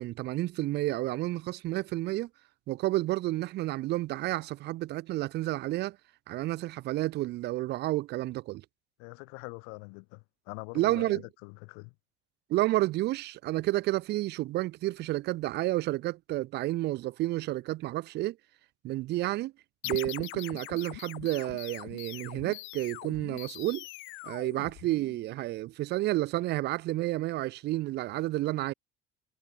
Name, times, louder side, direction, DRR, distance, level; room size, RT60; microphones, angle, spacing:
voice 1, 0.0-2.3 2.7-6.0 6.3-8.6 10.7-11.2 12.5-18.4 18.8-19.5 19.8-23.9 24.2-28.7, right 17 dB, 55° right, 0.7 m, -30 dB
voice 2, 9.0-11.9, left 40 dB or more, 90° left, 0.5 m, -44 dB
sound 1, 19.8-25.3, left 21 dB, 70° left, 1.6 m, -42 dB
cardioid pair, 130°, 21 cm